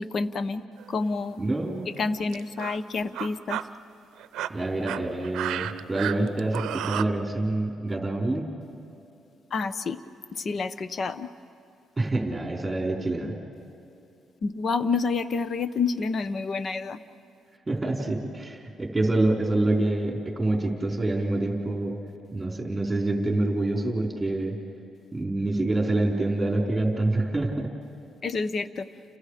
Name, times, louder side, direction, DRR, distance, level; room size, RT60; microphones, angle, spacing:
voice 1, 0.0-1.4 2.0-3.6 9.5-10.0 10.3-11.3 14.4-17.0 28.2-28.9, left 4 dB, 50° left, 13 dB, 1.0 m, -28 dB
sound 1, 0.8-1.1 1.9-2.0 2.3-2.8 3.1-3.6 4.2-7.0, right 12 dB, 85° right, 0.6 m, -32 dB
voice 2, 1.4-1.9 4.5-8.5 12.0-13.3 17.7-21.9 22.3-24.6 25.1-27.7, right 2 dB, 15° right, 0 dB, 4.8 m, -26 dB
30.0 x 29.5 x 5.1 m, 2.8 s
cardioid pair, 90°, 0 cm